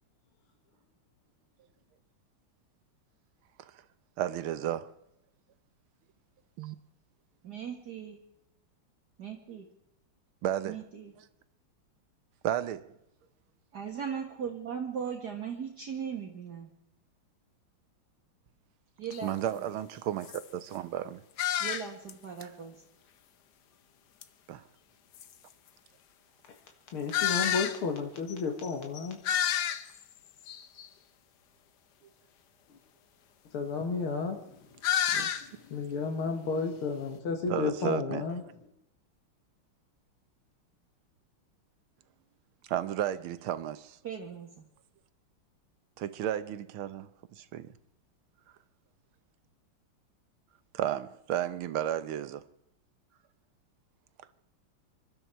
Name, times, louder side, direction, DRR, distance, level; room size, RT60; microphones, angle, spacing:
voice 1, 4.2-4.9 6.6-6.8 10.4-10.8 12.4-12.9 19.2-21.2 22.4-22.5 24.5-24.6 35.0-35.4 37.5-38.2 42.7-44.0 46.0-47.1 47.4-47.7 50.7-52.4, right 11 dB, 75° right, 1.7 m, -33 dB
voice 2, 7.4-8.2 9.2-9.7 10.7-11.1 13.7-16.7 19.0-19.7 21.6-22.8 44.0-44.6, right 7 dB, 50° right, 2.1 m, -38 dB
sound 1, 19.1-19.2 19.8-19.9 20.2-20.4 21.4-22.1 22.4-22.5 24.2-24.3 25.1-25.2 27.1-27.8 28.3-28.4 28.6-28.7 28.9-30.0 30.5-30.9 34.8-35.5, left 10 dB, 60° left, 1.3 m, -29 dB
voice 3, 26.9-29.2 33.5-34.8 35.5-38.4, left 4 dB, 80° left, 2.6 m, -32 dB
25.5 x 12.5 x 4.5 m
omnidirectional pair, 2.4 m